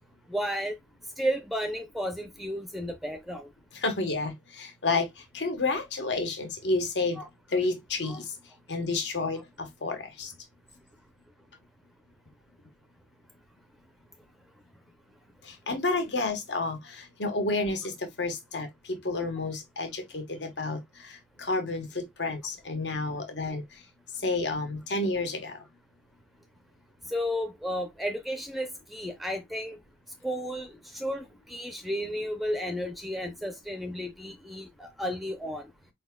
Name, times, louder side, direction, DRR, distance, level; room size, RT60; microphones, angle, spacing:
voice 1, 0.3-0.7 1.2-3.5 7.2-7.3 8.0-8.2 27.1-29.8 30.2-35.7, equal, ahead, 0.5 m, -33 dB
voice 2, 3.7-5.1 5.3-7.2 7.5-8.3 8.7-10.3 15.4-23.6 24.2-25.6, left 3 dB, 75° left, 1.2 m, -30 dB
4.8 x 4.1 x 2.2 m
head